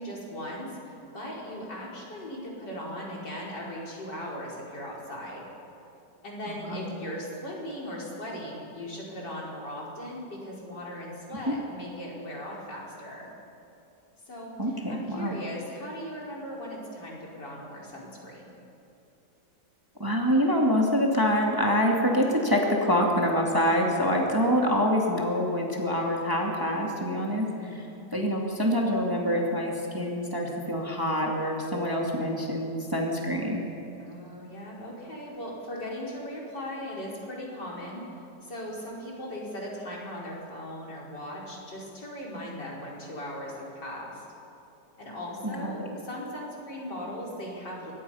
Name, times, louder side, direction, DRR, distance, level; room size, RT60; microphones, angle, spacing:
voice 1, 0.0-5.5 6.2-13.3 14.3-18.4 27.2-28.1 34.0-38.0 38.4-44.2 45.0-47.9, equal, 70° left, -4 dB, 5.1 m, -38 dB
voice 2, 6.5-6.8 11.5-11.6 14.6-15.4 20.0-27.8 28.1-33.6 45.6-45.8, equal, 10° right, -1 dB, 2.3 m, -26 dB
24.0 x 20.5 x 5.7 m, 2.8 s
omnidirectional pair, 1.9 m